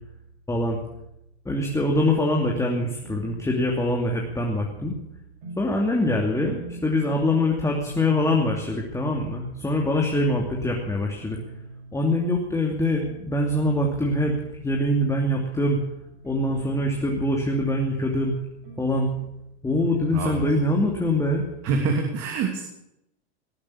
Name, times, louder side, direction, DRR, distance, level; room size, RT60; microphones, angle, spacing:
voice 1, 1.4-5.0 5.6-11.4 11.9-15.8 16.2-18.3 18.8-19.1 19.6-21.4, left 1 dB, 10° left, 0 dB, 2.6 m, -24 dB
sound 1, 1.5-2.5 3.0-3.8 4.2-4.9 5.4-5.7 6.0-6.1 6.4-7.4 7.8-8.5 8.8-9.8 10.3-10.5 10.9-11.0 11.2-12.1 12.6-13.3 13.8-14.5 15.0-15.6 16.0-17.1 17.5-18.1 18.6-19.3 19.8-20.2 20.5-20.6 20.8-20.9, right 2 dB, 65° right, 6.9 m, -41 dB
voice 2, 20.1-20.5 21.6-22.6, right 4 dB, 45° right, 3 dB, 2.8 m, -25 dB
19.0 x 8.6 x 8.6 m, 0.85 s
hypercardioid pair, 100°, 32 cm